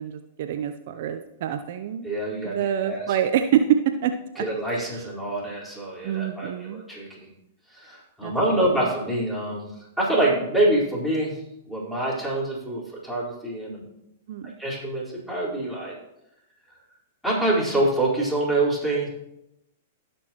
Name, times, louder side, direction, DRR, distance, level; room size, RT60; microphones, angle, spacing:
voice 1, 0.0-2.1 2.4-4.5 4.9-5.0 6.0-6.8 8.2-8.6 14.3-14.5, right 9 dB, 55° right, 7 dB, 0.6 m, -26 dB
voice 2, 2.0-3.1 4.4-7.3 7.7-9.7 10.0-13.8 14.6-16.0 17.2-19.1, right 1 dB, 5° left, -6 dB, 4.5 m, -26 dB
18.0 x 6.2 x 3.0 m, 0.85 s
hypercardioid pair, 105°, 0 cm